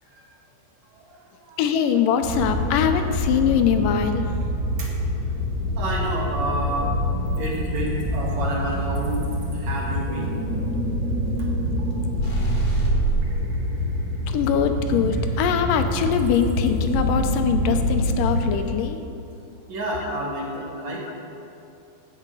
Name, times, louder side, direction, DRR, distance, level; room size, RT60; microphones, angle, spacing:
voice 1, 1.1-1.6 4.6-4.9 5.8-7.0 7.4-9.2 9.5-10.3 19.7-21.2, right 1 dB, 60° right, -3 dB, 2.7 m, -29 dB
voice 2, 1.6-4.3 14.3-19.0 20.0-20.2, left 8 dB, 85° left, 7 dB, 2.3 m, -22 dB
sound 1, 2.2-18.5, equal, 80° right, 3.2 m, -26 dB
sound 2, 12.1-13.4, right 3 dB, 40° left, 2.2 m, -23 dB
15.5 x 6.3 x 5.5 m, 2.6 s
omnidirectional pair, 3.8 m